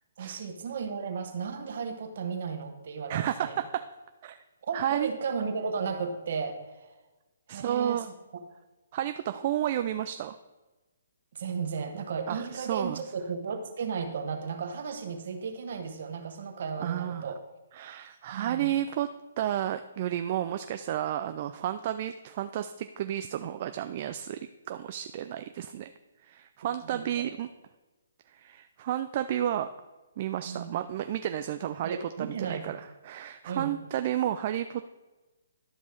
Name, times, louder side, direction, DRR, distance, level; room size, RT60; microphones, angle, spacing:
voice 1, 0.2-3.6 4.6-7.0 7.5-8.0 11.3-17.4 18.3-18.7 26.8-27.3 30.4-30.8 31.8-32.7 33.5-33.8, right 5 dB, 55° right, 6 dB, 1.4 m, -34 dB
voice 2, 3.1-3.8 4.2-4.4 4.7-5.1 7.5-8.1 8.9-10.4 12.3-13.0 16.8-17.3 17.7-19.1 19.4-24.4 24.7-25.9 26.2-27.5 28.3-29.7 30.2-34.9, right 11 dB, 40° right, 9 dB, 0.4 m, -31 dB
12.0 x 5.4 x 4.5 m, 1.1 s
hypercardioid pair, 140°, 0 cm